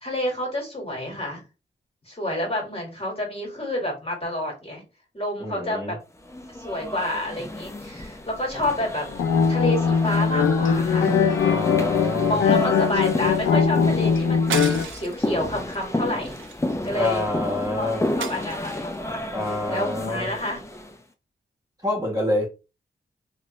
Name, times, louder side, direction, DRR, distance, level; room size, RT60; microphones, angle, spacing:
voice 1, 0.0-1.4 2.1-4.8 5.1-6.0 6.6-9.1 9.5-11.2 12.2-16.4 16.8-17.2 17.7-17.9 18.2-20.6, left 1 dB, 30° left, 1.9 m, -29 dB
voice 2, 5.4-5.9 8.5-8.6 11.4-12.4 16.9-18.0 19.3-20.3 21.8-22.5, left 1 dB, 20° right, 1.5 m, -27 dB
sound 1, 6.3-21.0, left 1 dB, 15° left, 0.6 m, -32 dB
sound 2, 9.1-14.8, left 6 dB, 80° left, 0.5 m, -21 dB
sound 3, 14.5-15.2 15.7-15.9 16.2-17.2 18.2-19.0, right 8 dB, 80° right, 0.5 m, -33 dB
3.0 x 2.5 x 3.1 m
cardioid pair, 55°, 20 cm